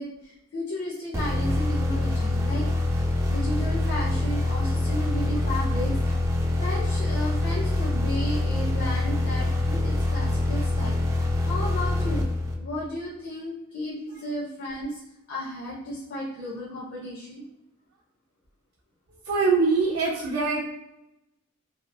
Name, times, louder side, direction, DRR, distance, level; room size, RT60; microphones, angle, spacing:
voice 1, 0.0-6.0 6.5-12.2 12.6-17.4, left 1 dB, 55° left, -6 dB, 0.7 m, -34 dB
sound 1, 1.1-12.8, left 2 dB, 15° right, 0.3 m, -25 dB
voice 2, 19.3-20.6, right 4 dB, 75° right, -7 dB, 0.6 m, -23 dB
2.8 x 2.3 x 2.5 m, 0.89 s
head